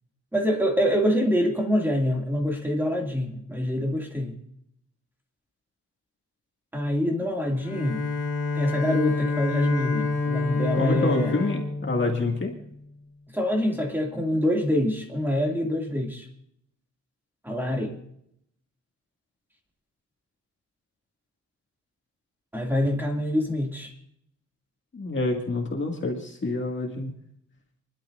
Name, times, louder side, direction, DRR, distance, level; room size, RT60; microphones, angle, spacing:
voice 1, 0.3-4.4 6.7-8.0 8.5-11.3 13.3-16.3 17.4-18.0 22.5-23.9, equal, 5° right, 1 dB, 2.4 m, -25 dB
Bowed string instrument, 7.6-12.8, left 3 dB, 85° left, 2.7 m, -28 dB
voice 2, 10.7-12.5 24.9-27.1, left 2 dB, 40° left, 0 dB, 2.1 m, -27 dB
29.0 x 11.5 x 2.6 m, 0.73 s
wide cardioid pair, 165°, 29 cm